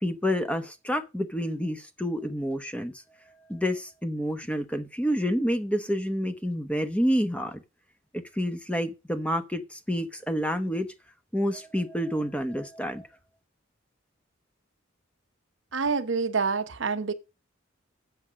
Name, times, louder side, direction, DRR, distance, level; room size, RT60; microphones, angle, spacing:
voice 1, 0.0-3.0 3.5-7.6 8.1-10.9 11.3-13.1, equal, 5° left, 0.9 m, -28 dB
voice 2, 15.7-17.1, right 5 dB, 75° right, 0.9 m, -27 dB
8.0 x 6.7 x 6.2 m
head